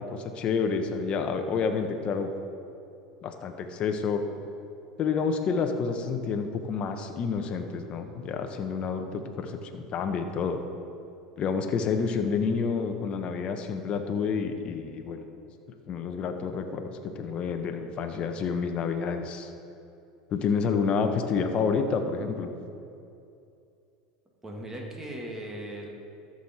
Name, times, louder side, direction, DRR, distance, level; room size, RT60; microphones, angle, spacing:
voice 1, 0.0-2.3 3.2-4.2 5.0-10.6 11.4-15.2 15.9-19.5 20.3-22.5, left 5 dB, 40° left, 6 dB, 1.0 m, -29 dB
voice 2, 24.4-25.9, right 1 dB, 15° right, 0 dB, 1.9 m, -38 dB
13.0 x 6.4 x 4.3 m, 2.6 s
hypercardioid pair, 100°, 3 cm